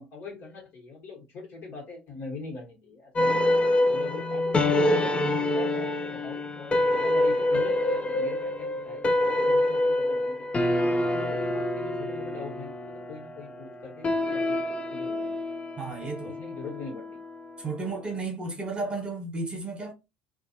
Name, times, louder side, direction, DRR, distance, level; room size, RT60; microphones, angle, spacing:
voice 1, 0.0-3.4 3.9-10.5 11.1-14.6 14.9-15.4 16.0-17.2, left 4 dB, 50° left, 1.3 m, -42 dB
sound 1, 3.2-17.7, left 1 dB, 25° left, 0.4 m, -26 dB
voice 2, 15.8-16.4 17.6-19.9, right 3 dB, 20° right, 1.2 m, -33 dB
2.5 x 2.4 x 2.8 m
figure-of-eight pair, 60°, 5 cm